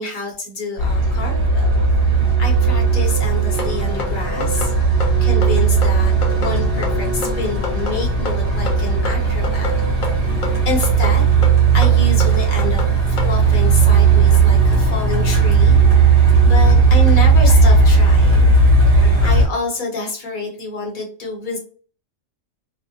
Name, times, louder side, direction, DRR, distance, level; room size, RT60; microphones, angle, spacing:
voice 1, 0.0-1.7 2.4-4.7 5.2-9.7 10.6-11.3 11.7-12.8 13.1-15.8 16.2-18.5 19.2-21.6, left 3 dB, 45° left, -1 dB, 0.8 m, -27 dB
Truck, 0.8-19.5, right 4 dB, 50° right, 1.0 m, -15 dB
sound 1, 3.6-13.3, left 3 dB, 80° left, 1.1 m, -28 dB
2.5 x 2.1 x 2.7 m, 0.42 s
omnidirectional pair, 1.4 m